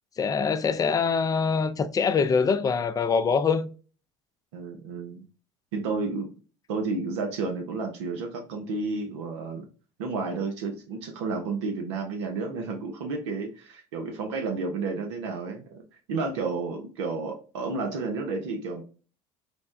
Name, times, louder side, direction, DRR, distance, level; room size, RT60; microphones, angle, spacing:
voice 1, 0.2-3.7, left 5 dB, 25° left, 0.4 m, -24 dB
voice 2, 4.5-5.2 5.7-6.3 6.7-9.7 10.0-15.8 16.1-18.8, right 4 dB, 85° right, 0.7 m, -31 dB
3.3 x 2.1 x 2.5 m
hypercardioid pair, 80°, 14 cm